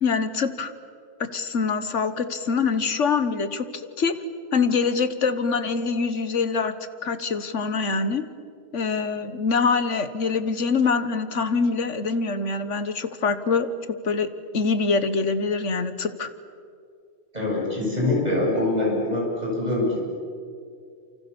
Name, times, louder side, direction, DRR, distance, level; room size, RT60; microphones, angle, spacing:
voice 1, 0.0-0.7 1.2-4.2 4.5-6.8 7.0-8.2 8.7-13.7 14.0-16.3, left 5 dB, 70° left, 11 dB, 1.7 m, -24 dB
voice 2, 17.3-20.0, left 2 dB, 35° right, -3 dB, 8.1 m, -24 dB
30.0 x 28.0 x 7.1 m, 2.3 s
omnidirectional pair, 1.3 m